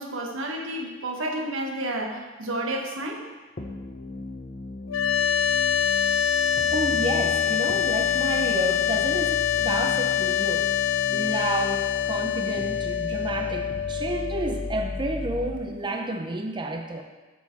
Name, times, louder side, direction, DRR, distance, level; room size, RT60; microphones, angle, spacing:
voice 1, 0.0-3.2, right 1 dB, 85° right, 1 dB, 1.3 m, -31 dB
sound 1, 3.6-15.6, left 2 dB, 45° left, 0.9 m, -37 dB
sound 2, 4.9-16.0, left 10 dB, 80° left, 0.5 m, -25 dB
voice 2, 6.7-10.7 11.1-17.0, right 2 dB, 25° right, 4 dB, 0.5 m, -30 dB
10.0 x 5.5 x 4.5 m, 1.3 s
head